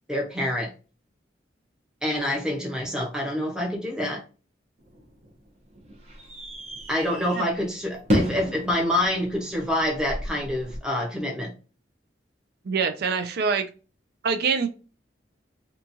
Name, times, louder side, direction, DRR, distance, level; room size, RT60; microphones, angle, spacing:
voice 1, 0.1-0.7 2.0-4.2 6.9-11.5, left 1 dB, 5° right, -1 dB, 0.8 m, -27 dB
sound 1, 4.8-10.8, equal, 35° right, 0.8 m, -32 dB
voice 2, 12.6-13.7 14.2-14.7, right 5 dB, 60° right, 8 dB, 0.4 m, -24 dB
2.9 x 2.3 x 2.6 m, 0.34 s
head